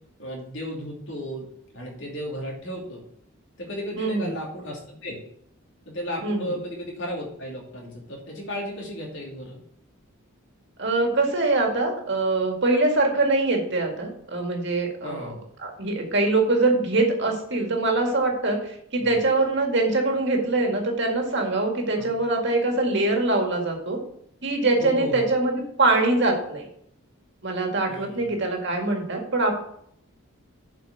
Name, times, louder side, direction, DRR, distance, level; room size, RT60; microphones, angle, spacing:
voice 1, 0.2-1.5 1.7-3.0 3.6-5.2 5.8-9.6 15.0-15.4 19.0-19.1 21.9-22.1 24.8-25.2 27.8-28.3, equal, 55° left, -2 dB, 2.8 m, -34 dB
voice 2, 4.0-4.3 6.2-6.5 10.8-15.3 15.6-24.0 24.4-26.6 27.4-29.6, right 2 dB, 50° right, 2 dB, 2.0 m, -23 dB
7.8 x 5.0 x 6.6 m, 0.70 s
head